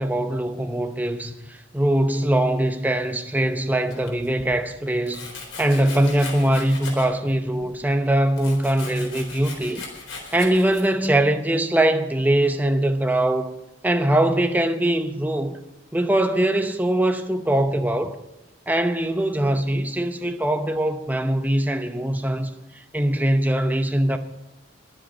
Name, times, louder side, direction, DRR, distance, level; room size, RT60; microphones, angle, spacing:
voice 1, 0.0-9.8 10.3-13.5 13.8-15.6 15.9-18.2 18.7-22.5 22.9-24.2, right 1 dB, 10° right, 0.8 m, -22 dB
Domestic sounds home sounds, 3.9-4.5 5.1-7.3 7.6-11.1, left 3 dB, 85° left, 4.0 m, -38 dB
22.5 x 7.7 x 5.4 m
head